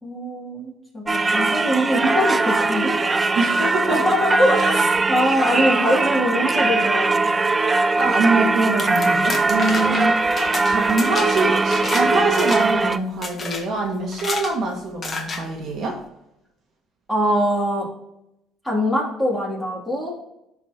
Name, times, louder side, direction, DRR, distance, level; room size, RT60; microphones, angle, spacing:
voice 1, 0.0-2.9 3.9-7.3 9.8-9.9 17.1-17.9 18.6-20.1, equal, ahead, -4 dB, 2.9 m, -22 dB
Singing / Church bell, 1.1-13.0, right 3 dB, 20° right, 0.4 m, -20 dB
voice 2, 3.3-4.0 4.5-4.8 7.9-10.1 10.6-16.0, right 3 dB, 50° right, 0 dB, 1.6 m, -24 dB
sound 1, 8.6-12.1 12.3-12.8 13.2-13.6 14.1-14.5 15.0-15.4, left 3 dB, 30° left, 1.2 m, -30 dB
11.0 x 4.1 x 3.0 m, 0.84 s
cardioid pair, 110°, 0 cm